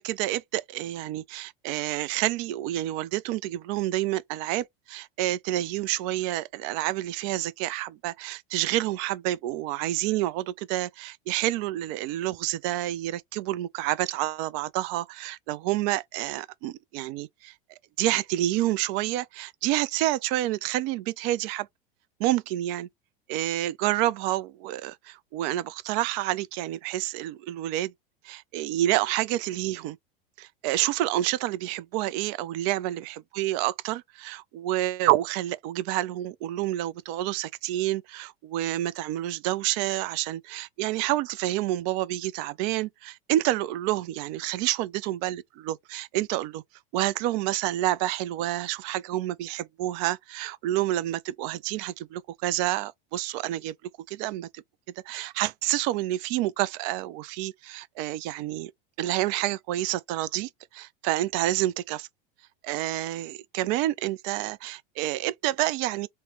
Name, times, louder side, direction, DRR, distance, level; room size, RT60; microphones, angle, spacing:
voice 1, 0.0-17.5 18.0-21.7 22.2-22.9 23.3-27.9 28.2-30.0 30.4-46.6 46.9-53.7 54.1-54.6 55.1-58.7 59.0-62.1 62.6-66.1, right 15 dB, 50° right, 0.4 m, -28 dB
3.1 x 2.1 x 3.0 m
hypercardioid pair, 90°, 29 cm